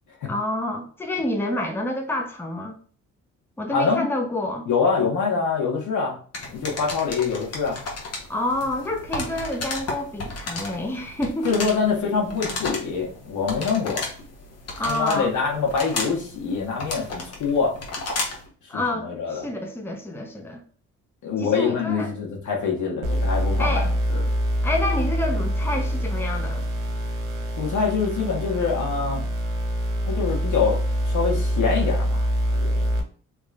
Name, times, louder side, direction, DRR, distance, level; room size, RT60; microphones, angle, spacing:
voice 1, 0.2-2.8 3.6-4.7 8.3-11.6 11.9-12.2 14.8-15.3 18.7-20.6 21.4-22.1 23.6-23.9 24.6-26.7, left 1 dB, 10° left, 0.8 m, -28 dB
voice 2, 3.7-4.1 4.7-6.2 6.5-7.8 11.4-14.1 14.9-17.7 18.9-19.5 21.2-24.2 27.6-29.2 30.1-30.8 31.0-32.2 32.5-32.9, left 5 dB, 75° left, 1.5 m, -25 dB
sound 1, 6.3-18.5, left 3 dB, 55° left, 1.3 m, -34 dB
sound 2, 23.0-33.0, equal, 85° right, 1.0 m, -25 dB
3.6 x 3.0 x 2.5 m
cardioid pair, 90°, 30 cm